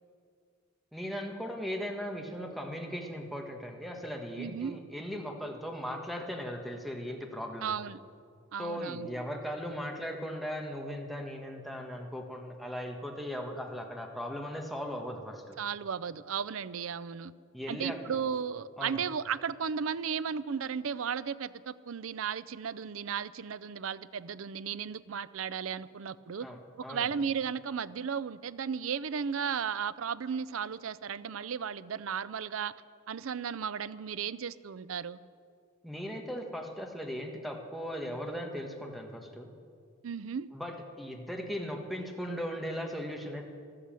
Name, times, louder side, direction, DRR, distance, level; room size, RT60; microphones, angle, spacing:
voice 1, 0.9-7.8 8.6-15.5 17.5-18.2 18.8-19.0 26.4-27.1 35.8-39.5 40.5-43.4, equal, ahead, 1 dB, 1.5 m, -38 dB
voice 2, 4.4-4.8 7.6-8.0 8.5-9.1 15.6-17.3 17.7-26.5 26.8-32.7 33.1-35.2 40.0-40.5, right 7 dB, 70° right, 16 dB, 0.5 m, -35 dB
14.0 x 12.5 x 7.6 m, 2.2 s
head